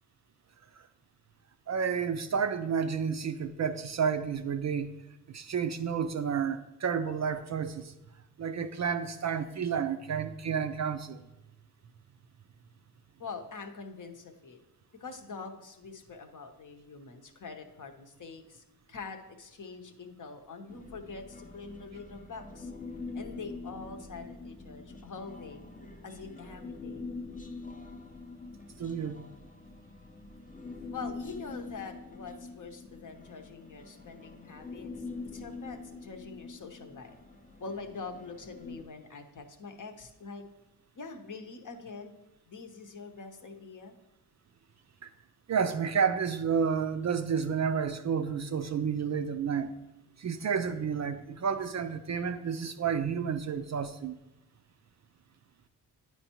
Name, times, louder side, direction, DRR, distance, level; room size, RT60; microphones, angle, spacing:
voice 1, 1.7-4.9 5.3-7.9 8.4-11.2 28.8-29.2 45.0-45.1 45.5-49.7 50.2-54.1, right 6 dB, 40° right, 9 dB, 0.4 m, -30 dB
voice 2, 13.2-14.6 15.0-22.7 23.1-25.7 26.0-27.1 30.9-34.9 35.3-37.2 37.6-40.4 40.9-42.1 42.5-43.9, left 4 dB, 45° left, 5 dB, 0.9 m, -44 dB
Human voice, 20.7-38.8, left 3 dB, 20° left, 0.6 m, -45 dB
9.0 x 4.5 x 2.9 m, 0.96 s
supercardioid pair, 50°, 42 cm